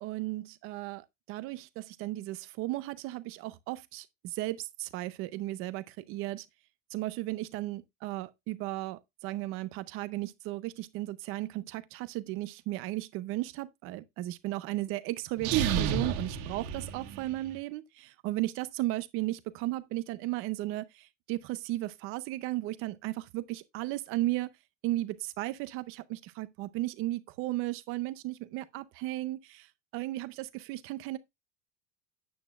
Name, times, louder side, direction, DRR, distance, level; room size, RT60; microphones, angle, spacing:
voice 1, 0.0-6.5 6.9-24.5 24.8-29.7 29.9-31.2, right 17 dB, 30° right, 0.5 m, -35 dB
sound 1, 15.4-17.5, right 9 dB, 55° right, 1.9 m, -30 dB
9.2 x 8.2 x 2.3 m
cardioid pair, 180°, 44 cm